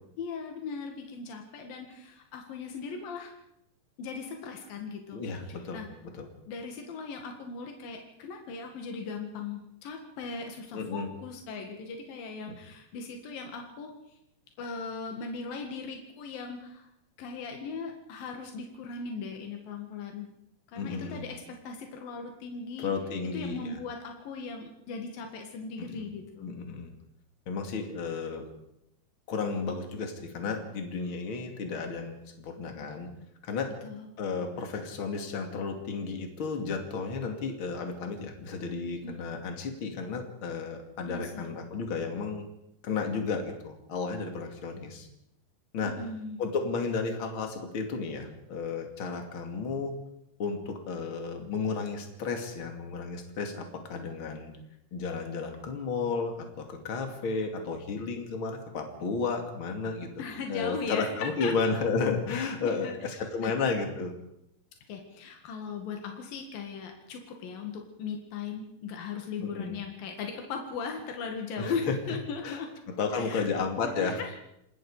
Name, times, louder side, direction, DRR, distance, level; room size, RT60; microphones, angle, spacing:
voice 1, 0.2-3.3 4.0-5.2 5.5-5.9 6.5-14.2 14.6-16.9 17.2-20.3 20.7-22.9 23.3-26.5 33.8-34.1 39.0-39.1 41.1-41.4 45.8-46.4 60.2-61.8 62.3-63.5 64.9-72.7 73.1-74.4, left 5 dB, 80° left, 3 dB, 3.7 m, -38 dB
voice 2, 5.1-5.8 6.1-6.3 10.7-11.1 12.5-12.6 20.7-21.2 22.8-23.7 25.8-26.0 26.4-26.9 27.5-28.4 29.3-33.1 33.4-33.7 34.2-42.5 42.8-45.1 45.7-45.9 46.4-49.9 50.4-54.5 54.9-60.2 60.5-64.1 69.4-69.8 71.6-71.9 72.4-72.6 72.9-74.2, left 4 dB, 40° left, 4 dB, 3.0 m, -33 dB
28.0 x 20.0 x 5.0 m, 0.79 s
omnidirectional pair, 4.0 m